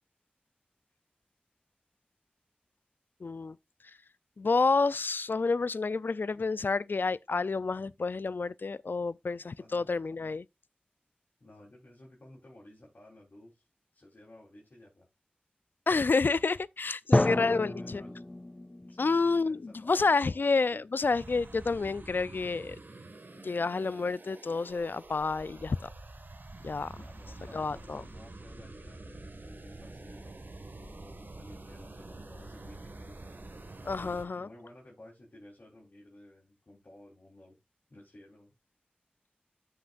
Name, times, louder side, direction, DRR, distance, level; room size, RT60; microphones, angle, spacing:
voice 1, 3.2-3.6 4.4-10.4 15.9-18.0 19.0-22.8 23.4-25.8 26.6-26.9 27.5-28.0 33.9-34.5, left 4 dB, 85° left, 0.4 m, -29 dB
voice 2, 9.6-9.9 11.4-13.6 13.9-15.1 17.6-18.2 18.8-20.8 26.9-30.5 30.9-33.2 33.8-37.6 37.9-38.5, left 1 dB, 65° left, 3.6 m, -54 dB
Drum, 17.1-20.8, left 1 dB, 30° left, 0.6 m, -31 dB
sound 1, 21.1-34.3, right 2 dB, 75° right, 1.7 m, -47 dB
13.5 x 5.8 x 2.5 m
wide cardioid pair, 50°, 3 cm